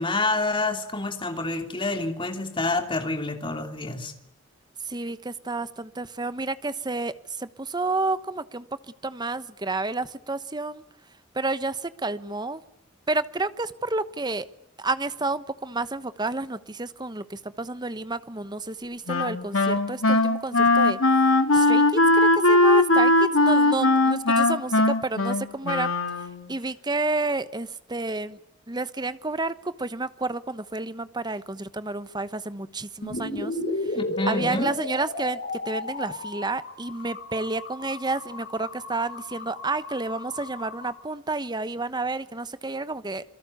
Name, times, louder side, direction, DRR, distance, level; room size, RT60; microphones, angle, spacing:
voice 1, 0.0-4.1 33.9-34.7, left 2 dB, 25° left, 3.0 m, -28 dB
voice 2, 4.9-8.7 9.0-10.8 11.3-12.6 13.1-14.5 14.8-21.0 21.5-25.9 26.5-28.4 28.7-33.5 34.3-35.4 35.7-43.2, right 3 dB, 20° right, 1.1 m, -30 dB
Wind instrument woodwind instrument, 19.1-26.5, left 2 dB, 90° left, 2.5 m, -20 dB
sound 1, 33.0-40.9, left 2 dB, 55° left, 6.3 m, -34 dB
27.0 x 22.0 x 8.3 m
head